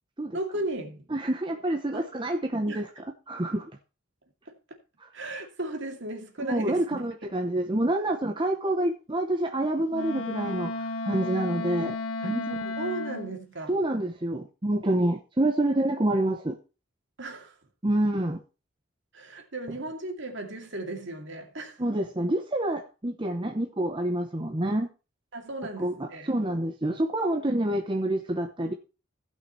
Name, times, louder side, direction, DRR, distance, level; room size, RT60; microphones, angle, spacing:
voice 1, 0.3-1.1 1.9-2.1 2.7-2.8 4.5-4.6 5.1-7.4 12.2-12.4 12.8-13.7 17.2-17.6 19.1-21.8 25.3-26.3, right 2 dB, 60° right, 2.4 m, -36 dB
voice 2, 1.1-2.9 3.3-3.7 6.5-12.6 13.7-16.6 17.8-18.4 21.8-24.9 25.8-28.7, right 1 dB, 25° right, 0.9 m, -27 dB
Wind instrument woodwind instrument, 9.9-13.4, left 2 dB, 80° left, 0.9 m, -33 dB
16.0 x 5.7 x 4.4 m
head